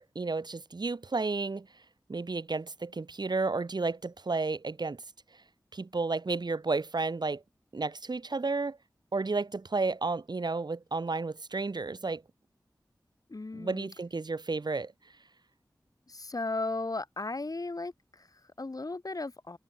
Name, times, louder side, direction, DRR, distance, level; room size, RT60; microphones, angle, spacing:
voice 1, 0.0-1.7 2.1-5.0 5.7-7.4 7.7-8.8 9.1-12.2 13.5-14.9, right 3 dB, 65° right, 4.2 m, -32 dB
voice 2, 13.3-13.9 16.1-19.6, left 3 dB, 50° left, 6.6 m, -36 dB
wide cardioid pair, 50°, 8 cm